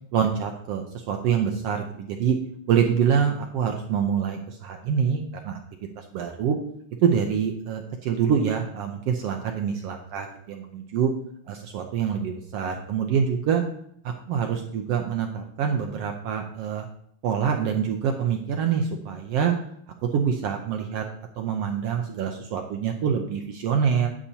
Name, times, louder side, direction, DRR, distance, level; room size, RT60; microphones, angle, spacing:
voice 1, 0.1-2.4 2.7-5.6 6.0-6.6 7.0-11.1 11.5-13.6 14.0-16.9 17.2-19.5 20.0-21.1 21.4-24.1, right 7 dB, 75° right, 3 dB, 1.5 m, -25 dB
9.9 x 8.5 x 2.8 m, 0.68 s
omnidirectional pair, 3.3 m